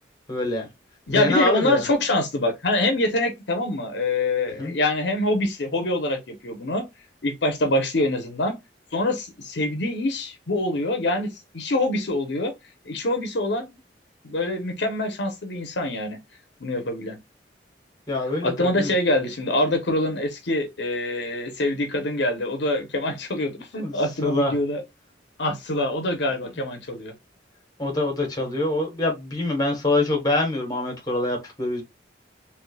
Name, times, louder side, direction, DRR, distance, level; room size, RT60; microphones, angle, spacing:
voice 1, 0.3-0.7 1.1-1.9 4.6-4.7 18.1-18.9 23.8-24.0 24.2-24.5 26.4-26.6 27.8-31.8, left 2 dB, 20° left, 1.1 m, -25 dB
voice 2, 1.1-6.8 7.2-8.6 8.9-11.3 11.5-12.5 12.9-13.7 14.2-16.2 16.6-17.2 18.4-24.8 25.4-27.1, left 1 dB, 70° left, 0.8 m, -25 dB
3.2 x 3.1 x 2.2 m
head